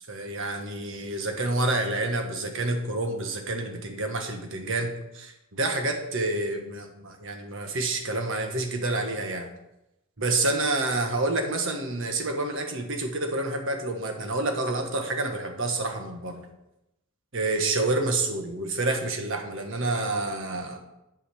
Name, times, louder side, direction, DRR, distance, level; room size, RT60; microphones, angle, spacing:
voice 1, 0.1-9.5 10.2-16.5 17.3-20.8, right 2 dB, 60° right, 4 dB, 1.4 m, -28 dB
8.5 x 5.6 x 6.9 m, 0.89 s
head